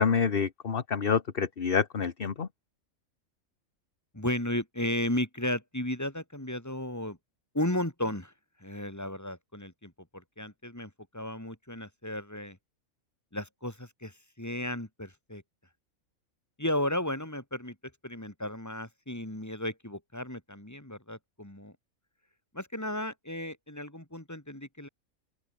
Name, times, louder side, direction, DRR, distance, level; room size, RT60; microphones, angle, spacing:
voice 1, 0.0-2.5, left 6 dB, 45° left, 1.4 m, -27 dB
voice 2, 4.1-7.2 7.5-8.3 8.6-12.6 13.3-15.4 16.6-17.8 18.0-21.7 22.5-24.9, left 1 dB, 10° left, 3.8 m, -34 dB
open air
omnidirectional pair, 1.5 m